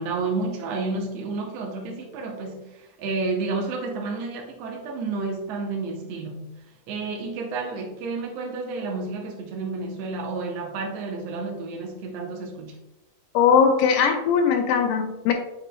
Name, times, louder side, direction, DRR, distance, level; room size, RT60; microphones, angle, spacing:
voice 1, 0.0-6.5 6.9-12.8, right 3 dB, 85° right, 1 dB, 1.4 m, -31 dB
voice 2, 13.3-15.3, left 6 dB, 80° left, 4 dB, 2.0 m, -19 dB
7.9 x 5.3 x 2.2 m, 0.94 s
omnidirectional pair, 4.2 m